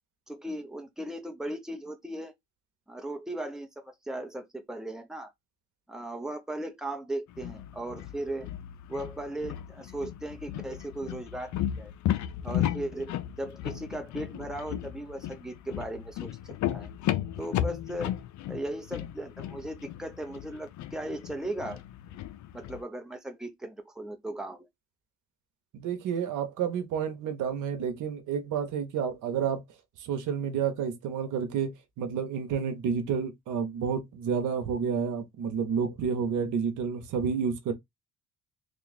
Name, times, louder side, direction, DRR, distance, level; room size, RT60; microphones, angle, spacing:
voice 1, 0.3-2.3 2.9-5.3 5.9-8.5 8.9-11.9 12.4-16.4 16.7-16.9 17.4-18.1 18.5-21.8 22.5-24.7, right 1 dB, ahead, 0.8 m, -37 dB
sound 1, 7.3-22.8, left 11 dB, 75° left, 0.5 m, -35 dB
voice 2, 25.7-29.6 30.0-31.7 32.0-37.7, right 7 dB, 85° right, 0.9 m, -30 dB
3.3 x 2.4 x 4.0 m
cardioid pair, 90°, 30 cm